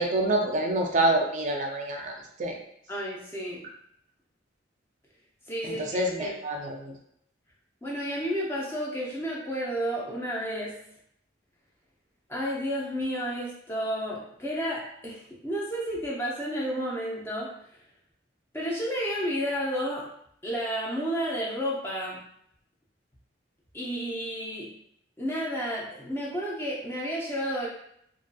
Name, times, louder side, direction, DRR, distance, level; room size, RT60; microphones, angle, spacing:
voice 1, 0.0-2.1 2.4-2.5 5.6-6.9, right 1 dB, 40° right, 2 dB, 0.4 m, -27 dB
voice 2, 2.9-3.6 5.5-6.4 7.8-10.7 12.3-17.5 18.5-20.1 20.4-22.2 23.7-24.7 25.2-27.7, equal, 15° left, -4 dB, 0.6 m, -31 dB
2.6 x 2.5 x 2.2 m, 0.70 s
head